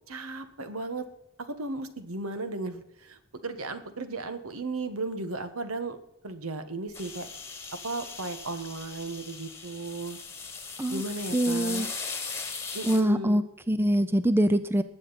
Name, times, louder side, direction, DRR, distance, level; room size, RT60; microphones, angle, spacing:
voice 1, 0.1-1.1 1.4-7.3 7.8-10.2 10.9-11.9 12.7-13.4, right 2 dB, 85° right, 10 dB, 1.4 m, -35 dB
sound 1, 6.9-13.0, left 5 dB, 15° left, 1.5 m, -39 dB
voice 2, 11.3-11.9 12.9-14.8, right 1 dB, 10° right, 12 dB, 0.4 m, -24 dB
20.0 x 7.8 x 4.2 m, 0.82 s
head